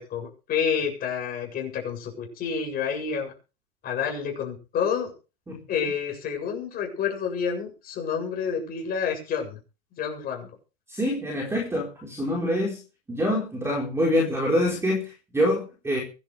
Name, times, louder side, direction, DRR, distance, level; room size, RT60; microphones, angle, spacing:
voice 1, 0.0-3.3 3.8-5.1 5.7-9.6 10.0-10.5, left 7 dB, 25° left, 2 dB, 7.9 m, -29 dB
voice 2, 10.9-12.8 13.1-16.0, equal, 5° right, -1 dB, 4.5 m, -25 dB
24.5 x 11.5 x 3.5 m, 0.34 s
supercardioid pair, 150°, 34 cm